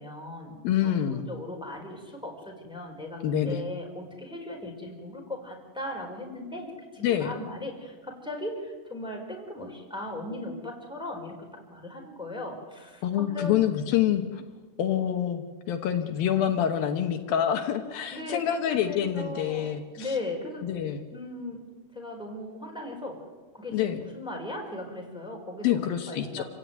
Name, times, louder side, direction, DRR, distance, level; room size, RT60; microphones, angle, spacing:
voice 1, 0.0-13.5 18.1-20.7 21.0-23.3 23.5-26.4, left 2 dB, ahead, 0 dB, 4.4 m, -38 dB
voice 2, 0.6-1.3 3.2-3.6 7.0-7.3 13.0-14.4 14.8-20.1 20.6-21.1 23.7-24.0 25.6-26.4, left 10 dB, 75° left, 6 dB, 2.9 m, -27 dB
28.0 x 16.5 x 9.4 m, 1.4 s
omnidirectional pair, 4.4 m